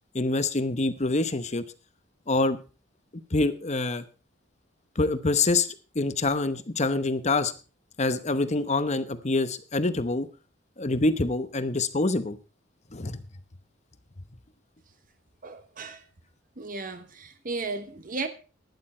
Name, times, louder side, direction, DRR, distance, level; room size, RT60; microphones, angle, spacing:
voice 1, 0.1-1.6 2.3-2.6 3.3-4.0 5.0-5.7 5.9-7.5 8.0-10.3 10.8-12.4 12.9-13.2, left 2 dB, 35° left, 0.9 m, -25 dB
voice 2, 15.4-16.0 16.6-18.3, right 3 dB, 45° right, 1.1 m, -35 dB
12.0 x 11.0 x 4.3 m
head